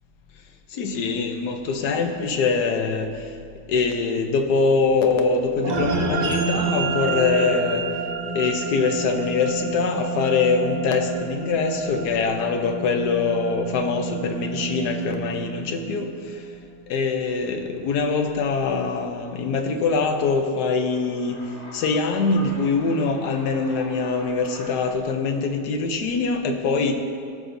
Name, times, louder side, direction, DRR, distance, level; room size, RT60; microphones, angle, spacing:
voice 1, 0.7-3.4 3.7-7.9 8.3-16.5 16.9-21.4 21.7-26.9, left 4 dB, 80° left, 5 dB, 1.3 m, -23 dB
sound 1, 5.6-16.3, right 4 dB, 90° right, 0.3 m, -29 dB
sound 2, 20.7-24.9, left 1 dB, 35° left, 1.4 m, -43 dB
17.5 x 6.3 x 2.6 m, 2.3 s
omnidirectional pair, 1.7 m